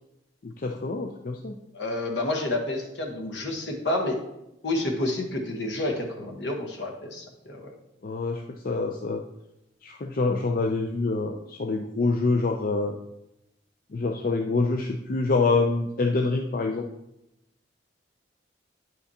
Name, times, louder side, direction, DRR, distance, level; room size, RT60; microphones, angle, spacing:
voice 1, 0.4-1.5 8.0-9.2 9.8-13.0 13.9-16.9, left 3 dB, 50° left, 3 dB, 0.4 m, -26 dB
voice 2, 1.7-4.2 4.6-7.7, left 2 dB, 70° left, 2 dB, 1.2 m, -29 dB
9.0 x 5.8 x 2.8 m, 0.88 s
head